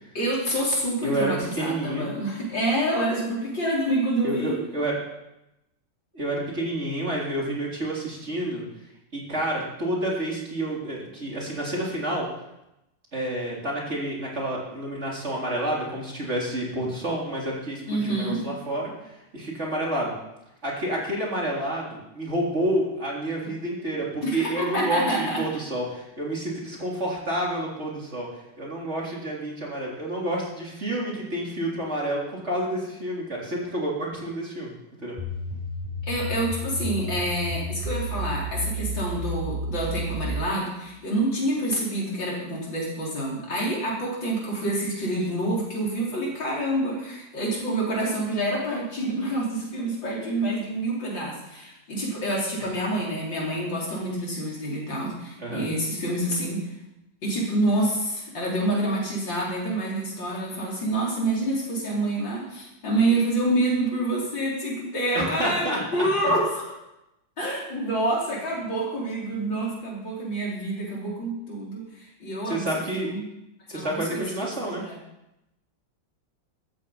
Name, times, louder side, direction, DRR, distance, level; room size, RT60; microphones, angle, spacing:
voice 1, 0.2-4.6 17.9-18.4 24.2-25.4 36.1-56.7 57.2-66.7 67.4-73.2 73.7-74.2 74.6-75.0, right 1 dB, 75° left, -4 dB, 5.5 m, -27 dB
voice 2, 1.0-2.1 4.2-5.0 6.1-8.6 9.1-12.3 13.1-20.1 20.6-34.7 35.0-35.2 52.6-52.7 55.4-55.7 65.1-66.1 72.4-73.1 73.7-74.8, right 1 dB, 35° right, -3 dB, 3.9 m, -29 dB
sound 1, 35.2-40.5, equal, 10° right, 5.6 m, -31 dB
14.5 x 13.5 x 5.7 m, 0.90 s
omnidirectional pair, 2.1 m